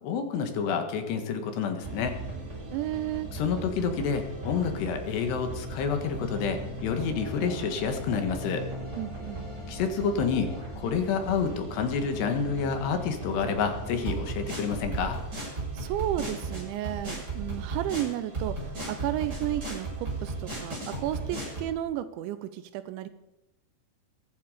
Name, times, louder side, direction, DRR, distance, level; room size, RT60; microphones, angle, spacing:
voice 1, 0.0-2.2 3.3-8.6 9.7-10.5 10.8-15.2, left 6 dB, 70° left, 6 dB, 3.6 m, -29 dB
sound 1, 1.8-21.7, right 2 dB, 20° right, 6.6 m, -37 dB
voice 2, 2.7-3.3 9.0-9.4 15.7-23.1, right 13 dB, 85° right, 12 dB, 3.0 m, -33 dB
22.5 x 12.0 x 5.1 m, 0.94 s
omnidirectional pair, 5.3 m